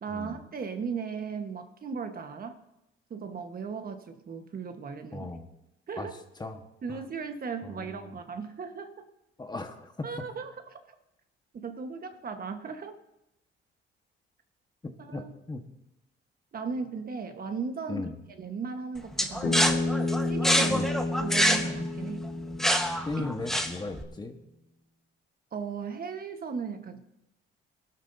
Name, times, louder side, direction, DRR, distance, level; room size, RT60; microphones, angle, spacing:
voice 1, 0.0-2.6 3.1-5.3 5.9-6.1 6.8-9.1 10.0-10.8 11.5-13.0 15.1-15.3 16.5-19.8 20.3-20.9 21.2-22.3 23.2-23.3 25.5-27.1, right 5 dB, 50° right, 7 dB, 1.3 m, -37 dB
voice 2, 5.1-5.5 6.0-6.6 6.9-7.0 7.6-8.1 9.4-10.2 14.8-15.6 17.9-18.1 20.7-20.9 23.1-24.4, left 3 dB, 20° left, 5 dB, 1.4 m, -37 dB
sound 1, 19.2-24.0, equal, ahead, 1.3 m, -26 dB
Bass guitar, 19.4-23.8, left 2 dB, 45° left, 2.2 m, -31 dB
20.0 x 12.5 x 2.7 m, 0.88 s
cardioid pair, 90°, 20 cm